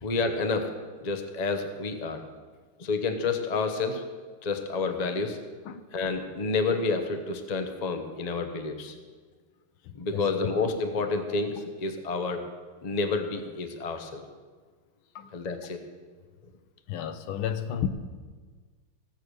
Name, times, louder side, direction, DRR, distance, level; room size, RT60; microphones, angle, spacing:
voice 1, 0.0-0.7 1.0-2.2 2.8-4.0 4.4-5.4 5.9-8.9 9.9-12.4 12.8-14.2 15.3-15.8, left 4 dB, 50° left, 6 dB, 0.4 m, -29 dB
voice 2, 9.8-10.3 15.1-15.3 16.9-17.9, left 9 dB, 75° left, 10 dB, 1.5 m, -32 dB
16.0 x 6.9 x 6.4 m, 1.5 s
omnidirectional pair, 2.4 m